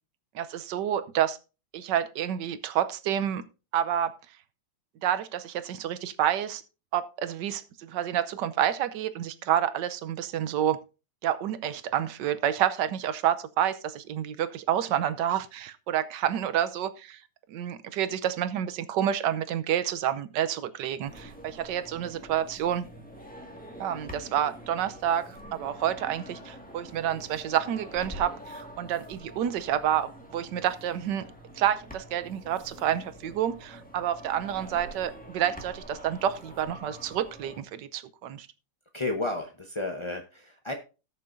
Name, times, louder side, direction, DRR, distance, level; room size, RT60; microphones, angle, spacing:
voice 1, 0.3-1.4 1.7-3.4 3.7-4.1 5.0-6.6 6.9-10.8 11.2-17.2 17.5-22.9 23.8-31.2 31.6-38.5, right 10 dB, 70° right, 13 dB, 1.3 m, -29 dB
sound 1, 21.1-37.6, right 1 dB, 5° left, 1.6 m, -46 dB
voice 2, 38.9-40.7, left 2 dB, 35° left, 2 dB, 0.4 m, -32 dB
18.5 x 6.6 x 2.6 m, 0.31 s
omnidirectional pair, 2.1 m